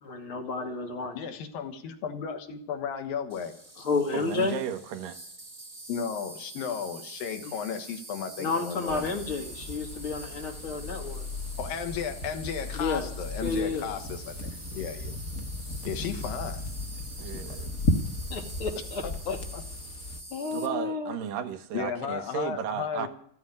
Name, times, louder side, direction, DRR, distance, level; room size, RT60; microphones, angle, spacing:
voice 1, 0.0-1.2 3.8-4.6 7.4-7.5 8.4-11.3 12.7-13.1 13.4-13.9 18.3-19.0 19.3-19.4 20.3-21.2, left 3 dB, 40° left, 2.7 m, -31 dB
voice 2, 1.1-3.9 5.9-9.1 11.6-15.2 15.8-16.6 17.3-17.6 19.0-19.6 21.7-23.1, left 7 dB, 85° left, 3.3 m, -34 dB
Insect, 3.3-20.7, right 2 dB, 15° right, 1.2 m, -46 dB
voice 3, 4.1-5.2 17.2-17.7 20.5-23.1, right 8 dB, 75° right, 2.7 m, -34 dB
sound 1, 8.9-20.2, left 2 dB, 60° left, 0.8 m, -35 dB
14.5 x 9.5 x 9.9 m
omnidirectional pair, 4.0 m